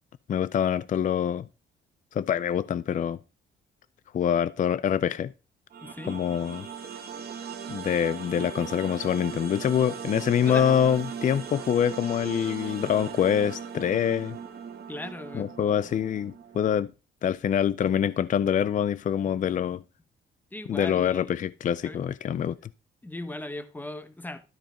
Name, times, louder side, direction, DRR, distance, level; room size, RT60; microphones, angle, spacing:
voice 1, 0.3-1.5 2.1-3.2 4.1-5.3 6.1-6.7 7.7-14.4 15.3-16.9 17.2-19.8 20.7-22.6, left 8 dB, 40° left, 0.4 m, -25 dB
sound 1, 5.7-16.8, right 7 dB, 50° right, 1.4 m, -39 dB
voice 2, 5.8-6.2 10.5-10.7 14.9-15.7 20.5-21.4 21.8-22.0 23.0-24.4, left 2 dB, 10° left, 1.1 m, -38 dB
12.5 x 4.5 x 5.1 m
cardioid pair, 90°, 20 cm